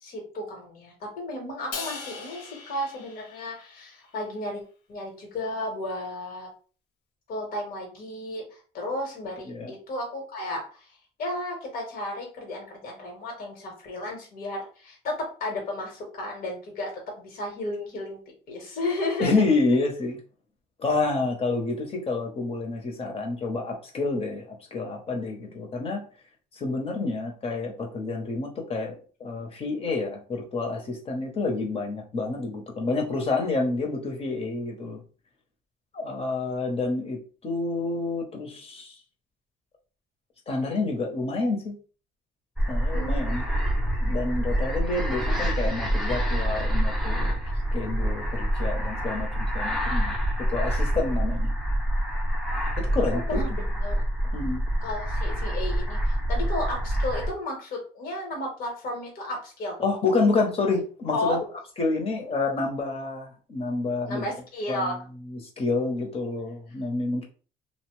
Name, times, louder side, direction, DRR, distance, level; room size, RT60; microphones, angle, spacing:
voice 1, 0.0-4.6 4.9-6.5 7.3-10.9 11.2-18.2 18.5-19.3 42.9-43.4 53.1-54.0 54.8-59.8 61.1-61.4 64.1-64.9, left 1 dB, 60° left, 1 dB, 1.1 m, -33 dB
Crash cymbal, 1.7-4.1, left 4 dB, 80° left, 0.7 m, -39 dB
voice 2, 19.2-20.2 20.8-26.0 26.5-35.0 35.9-39.0 40.5-41.8 42.7-43.4 44.0-50.1 50.5-51.5 52.8-53.4 54.3-54.6 59.8-61.4 61.8-64.2 64.7-65.0 65.3-67.2, left 3 dB, 35° left, 1 dB, 0.9 m, -28 dB
sound 1, 42.6-57.3, equal, ahead, 0.7 m, -26 dB
2.7 x 2.1 x 3.1 m, 0.38 s
cardioid pair, 110°, 17 cm